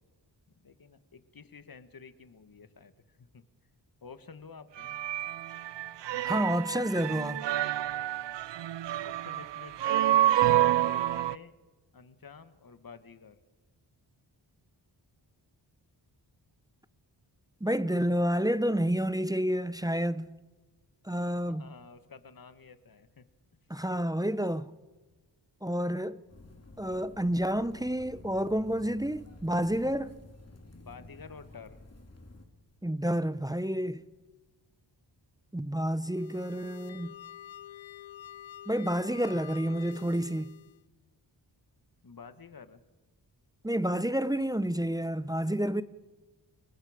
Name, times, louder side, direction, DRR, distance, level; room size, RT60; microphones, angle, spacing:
voice 1, 0.6-3.4 4.0-4.9 9.0-10.3 10.8-11.5 11.9-13.4 21.5-23.3 30.8-31.8 42.0-42.8, left 5 dB, 50° left, 1.5 m, -50 dB
sound 1, 4.8-11.3, right 13 dB, 75° right, 0.5 m, -28 dB
voice 2, 6.2-7.5 17.6-20.3 21.0-21.6 23.7-24.7 25.6-26.2 26.8-30.2 32.8-34.0 35.5-37.1 38.7-40.5 43.6-45.8, equal, 10° right, 0.7 m, -29 dB
sound 2, 26.3-32.5, left 2 dB, 35° left, 3.2 m, -51 dB
sound 3, 36.0-40.8, left 12 dB, 85° left, 0.6 m, -48 dB
29.5 x 19.0 x 5.0 m
cardioid pair, 65°, 44 cm